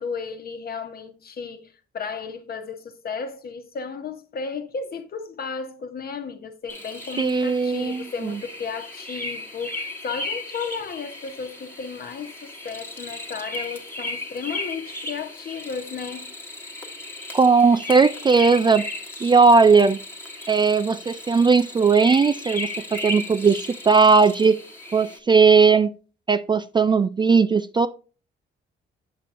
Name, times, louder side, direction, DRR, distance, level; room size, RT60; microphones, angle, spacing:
voice 1, 0.0-16.3, left 5 dB, 50° left, 1.1 m, -34 dB
sound 1, 6.7-25.2, left 1 dB, 10° left, 1.3 m, -35 dB
voice 2, 7.2-8.3 17.3-18.9 19.2-20.0 20.5-24.6 24.9-25.9 26.3-27.9, right 5 dB, 25° right, 0.3 m, -18 dB
7.5 x 5.9 x 2.5 m
cardioid pair, 90°, 20 cm